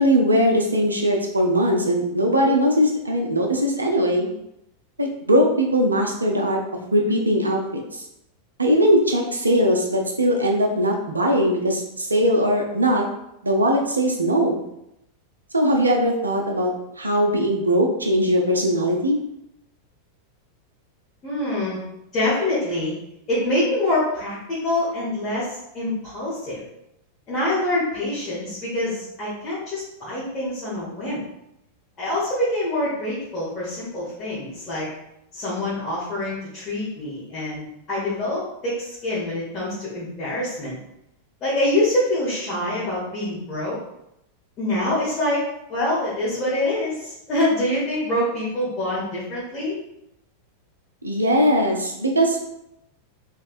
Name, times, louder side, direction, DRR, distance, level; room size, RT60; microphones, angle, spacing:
voice 1, 0.0-4.3 5.0-6.6 6.9-8.0 8.6-13.0 13.4-14.6 15.5-16.7 17.0-19.2 51.0-52.5, equal, 80° right, 1 dB, 0.5 m, -20 dB
voice 2, 21.2-21.8 22.1-22.9 23.3-26.6 27.3-31.2 32.0-34.9 35.3-40.8 41.4-43.8 44.6-49.8, left 1 dB, 30° left, -10 dB, 1.3 m, -25 dB
3.4 x 3.1 x 2.4 m, 0.83 s
figure-of-eight pair, 90°, 0 cm